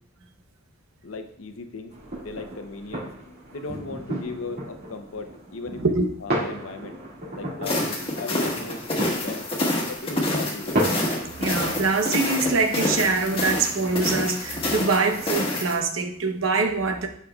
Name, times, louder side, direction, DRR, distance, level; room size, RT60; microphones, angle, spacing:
voice 1, 1.0-1.9 2.2-5.8 6.2-7.0 7.3-9.5 9.9-10.8, left 3 dB, 75° left, 6 dB, 0.8 m, -37 dB
sound 1, 1.9-15.3, right 1 dB, 50° right, 2.1 m, -34 dB
sound 2, 7.6-15.7, left 1 dB, 25° left, 1.5 m, -27 dB
voice 2, 11.4-17.1, right 3 dB, 75° right, 5 dB, 0.9 m, -24 dB
9.8 x 5.7 x 2.4 m, 0.67 s
head